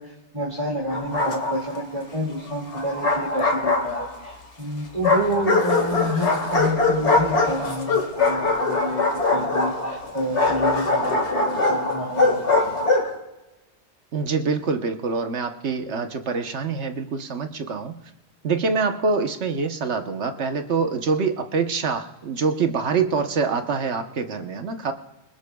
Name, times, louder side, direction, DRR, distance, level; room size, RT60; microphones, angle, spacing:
voice 1, 0.0-12.9, equal, 30° right, -3 dB, 2.3 m, -29 dB
Bark, 0.9-1.8 2.7-4.3 5.0-13.1, left 3 dB, 90° left, 2.3 m, -22 dB
voice 2, 14.1-17.9 18.4-24.9, right 5 dB, 80° right, 6 dB, 1.4 m, -25 dB
26.0 x 18.5 x 2.3 m, 1.1 s
omnidirectional pair, 1.1 m